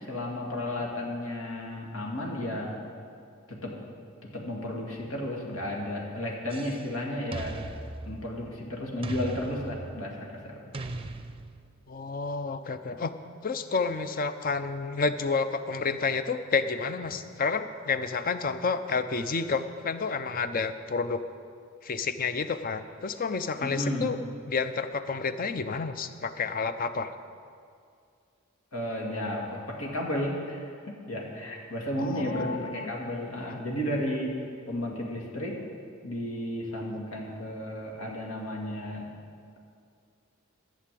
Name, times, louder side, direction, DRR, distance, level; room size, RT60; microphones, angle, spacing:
voice 1, 0.0-2.8 3.5-3.8 4.2-7.6 8.0-10.6 23.6-24.1 28.7-35.6 36.0-39.1, left 1 dB, 80° left, -1 dB, 2.1 m, -33 dB
sound 1, 6.5-6.9 7.3-8.6 9.0-10.1 10.7-11.8, right 2 dB, 25° right, 0.6 m, -39 dB
voice 2, 11.9-13.1 13.4-21.2 21.8-24.2 24.5-27.1 32.0-32.9 33.4-33.6, left 4 dB, 45° left, 11 dB, 0.6 m, -30 dB
12.5 x 7.5 x 7.6 m, 2.3 s
head